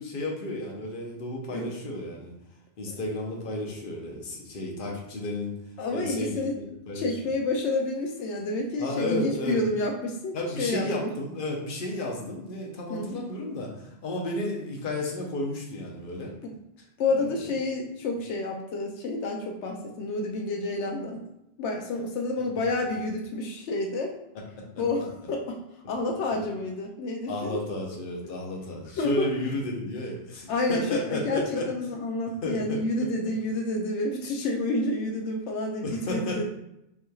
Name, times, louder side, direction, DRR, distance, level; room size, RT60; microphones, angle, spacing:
voice 1, 0.0-2.3 2.8-5.6 5.9-7.1 8.8-9.6 10.3-16.3 24.6-24.7 27.3-31.7 32.4-32.8 35.8-36.4, left 1 dB, 50° left, -1 dB, 1.0 m, -32 dB
voice 2, 5.8-6.5 6.9-11.1 12.9-13.2 16.4-16.5 17.0-21.2 21.6-24.1 24.8-27.6 29.0-29.3 30.5-36.4, left 2 dB, 85° left, 2 dB, 0.9 m, -29 dB
5.4 x 3.1 x 2.3 m, 0.83 s
omnidirectional pair, 1.2 m